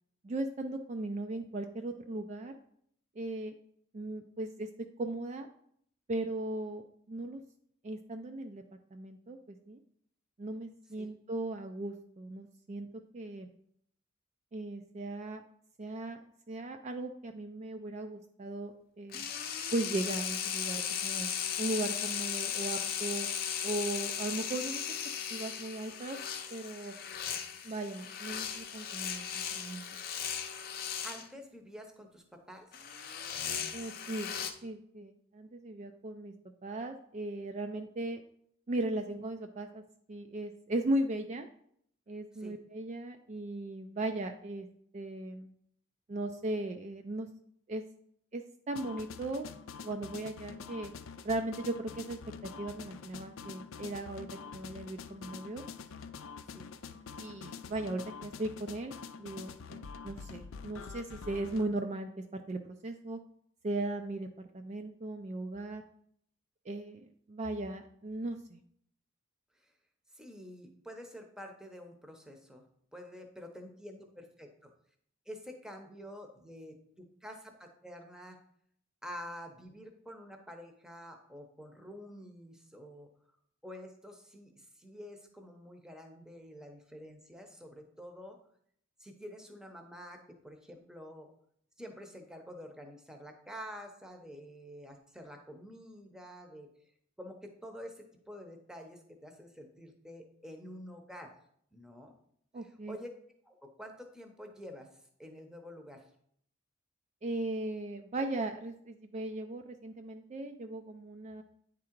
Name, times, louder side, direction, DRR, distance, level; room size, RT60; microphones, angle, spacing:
voice 1, 0.2-2.5 3.2-3.5 3.9-4.7 5.0-5.5 6.1-6.8 7.1-7.4 7.8-8.6 8.9-9.8 10.4-12.9 13.1-13.5 14.5-15.4 15.8-16.2 16.5-19.3 19.7-21.3 21.6-23.3 23.6-24.8 25.3-26.2 26.5-27.0 27.6-29.8 33.7-34.3 34.6-36.3 36.6-38.2 38.7-39.8 40.1-41.5 42.1-44.7 44.9-45.5 46.1-47.3 47.7-47.8 48.3-48.4 48.7-49.5 49.8-50.9 51.2-52.2 52.6-54.3 54.5-55.6 57.2-63.2 63.6-64.3 64.5-65.8 66.7-68.6 102.5-103.0 107.2-111.4, right 2 dB, 35° right, 5 dB, 0.4 m, -37 dB
sound 1, 19.1-31.3 32.7-34.5, left 8 dB, 50° left, 0.7 m, -37 dB
voice 2, 31.0-32.7 42.3-42.6 56.5-56.7 69.6-69.7 70.1-72.6 72.9-74.7 75.3-78.4 79.0-83.1 83.6-88.4 89.0-91.3 91.8-96.7 97.2-101.3 101.7-102.1 102.6-103.1 103.4-106.1, equal, 5° right, 4 dB, 0.8 m, -48 dB
sound 2, 48.7-61.7, left 5 dB, 90° left, 0.5 m, -46 dB
9.4 x 3.7 x 4.5 m, 0.68 s
head